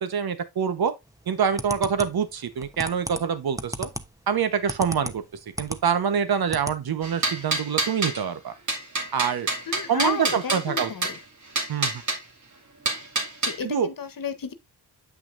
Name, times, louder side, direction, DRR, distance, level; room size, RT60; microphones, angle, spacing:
voice 1, 0.0-0.9 1.3-3.9 4.3-5.2 5.6-8.5 9.1-9.5 9.9-10.9 11.7-12.0 13.6-13.9, right 7 dB, 65° right, 1.3 m, -25 dB
sound 1, 1.2-5.8 6.2-6.8 7.1-7.2 7.5-7.6, right 1 dB, 10° right, 1.0 m, -34 dB
sound 2, 7.0-8.2 8.7-11.2 11.6-12.2 12.9-13.6, right 3 dB, 45° right, 2.6 m, -27 dB
voice 2, 9.7-11.2 13.4-14.5, left 6 dB, 55° left, 1.3 m, -32 dB
8.8 x 5.9 x 2.6 m
cardioid pair, 75°, 39 cm